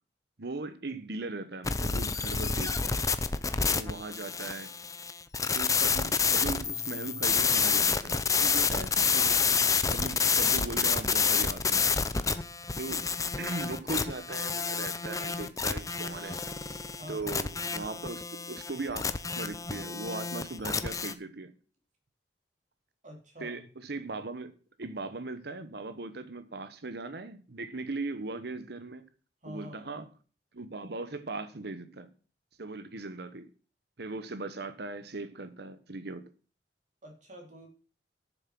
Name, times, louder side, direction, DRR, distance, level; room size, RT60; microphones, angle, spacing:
voice 1, 0.4-3.0 3.6-4.7 5.5-8.9 9.1-9.4 9.9-11.9 12.8-16.4 17.1-21.5 23.4-24.5 24.8-29.0 29.4-30.0 30.5-32.1 32.6-33.5 34.0-36.3, right 3 dB, 65° right, 1.0 m, -39 dB
sound 1, 1.6-21.1, left 5 dB, 20° left, 0.7 m, -29 dB
voice 2, 8.7-9.2 16.9-17.4 23.0-23.6 29.4-30.0 37.0-37.7, equal, 45° right, 3.9 m, -47 dB
sound 2, 15.7-16.9, right 1 dB, 25° right, 5.6 m, -53 dB
11.5 x 7.0 x 6.0 m
head